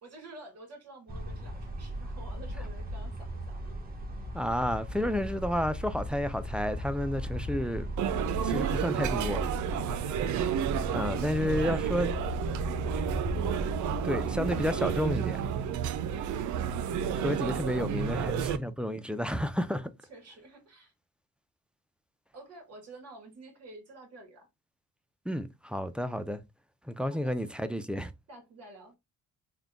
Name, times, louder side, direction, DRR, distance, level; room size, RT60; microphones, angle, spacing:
voice 1, 0.0-3.9 10.0-12.4 17.7-18.4 20.1-20.9 22.3-24.5 27.1-27.4 28.3-29.0, right 2 dB, 55° right, 2.0 m, -50 dB
sound 1, 1.1-15.2, equal, 30° right, 1.1 m, -37 dB
voice 2, 4.3-7.9 8.4-9.4 10.9-12.1 14.0-15.5 17.2-19.9 25.3-26.4 26.9-28.1, equal, 5° right, 0.4 m, -31 dB
sound 2, 8.0-18.6, right 9 dB, 75° right, 0.5 m, -31 dB
3.7 x 2.2 x 3.5 m
cardioid pair, 90°, 30 cm